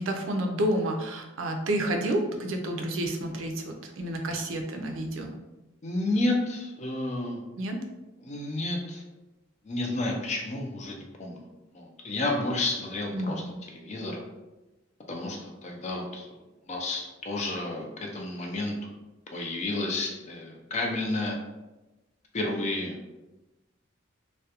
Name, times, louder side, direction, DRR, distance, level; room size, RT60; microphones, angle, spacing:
voice 1, 0.0-5.3 7.6-7.8 13.1-13.6, right 1 dB, 85° right, 3 dB, 0.4 m, -30 dB
voice 2, 5.8-7.4 8.2-9.0 9.6-11.5 11.7-13.4 13.7-14.2 15.1-16.3 16.7-18.9 19.3-21.4 22.3-22.9, left 2 dB, 35° left, 1 dB, 0.4 m, -31 dB
2.3 x 2.1 x 2.8 m, 1.0 s
head